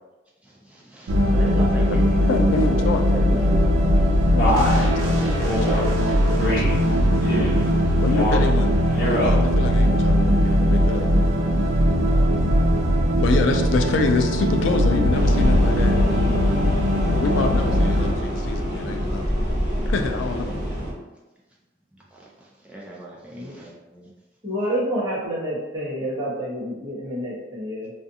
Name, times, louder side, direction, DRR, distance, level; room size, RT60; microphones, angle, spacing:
voice 1, 0.4-2.0 2.3-2.5 2.7-3.6 20.2-20.6 22.1-24.1, right 1 dB, 5° right, -5 dB, 0.4 m, -37 dB
sound 1, 1.1-18.1, equal, 85° right, 0.4 m, -19 dB
voice 2, 2.3-3.0 4.3-6.7 8.0-11.1 12.6-16.0 17.2-19.3 19.9-20.5, left 4 dB, 70° left, 4 dB, 0.3 m, -27 dB
Male speech man speaking, 4.4-4.8 5.4-5.8 6.4-6.8 7.2-7.7 8.1-8.5 8.9-9.4, equal, 50° left, 0.7 m, -24 dB
sound 2, 15.1-20.9, equal, 45° right, 1.0 m, -26 dB
voice 3, 24.4-27.9, equal, 20° right, -10 dB, 1.0 m, -28 dB
2.4 x 2.4 x 2.7 m, 1.1 s
head